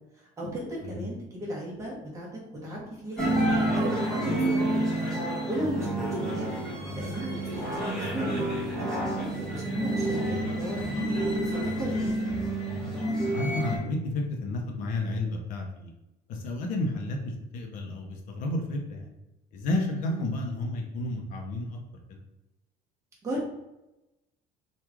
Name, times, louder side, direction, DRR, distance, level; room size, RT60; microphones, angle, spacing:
voice 1, 0.4-2.3 2.6-3.4 3.7-4.9 5.5-5.9 6.2-6.6 7.0-12.1 20.0-20.3 23.2-23.4, equal, 20° right, -4 dB, 1.1 m, -35 dB
sound 1, 3.2-13.8, right 1 dB, 5° left, 1.1 m, -29 dB
voice 2, 13.3-15.9 16.3-19.1 19.5-21.8 22.1-22.2, left 2 dB, 55° left, 1 dB, 0.7 m, -31 dB
3.0 x 2.4 x 3.5 m, 0.96 s
cardioid pair, 160°, 16 cm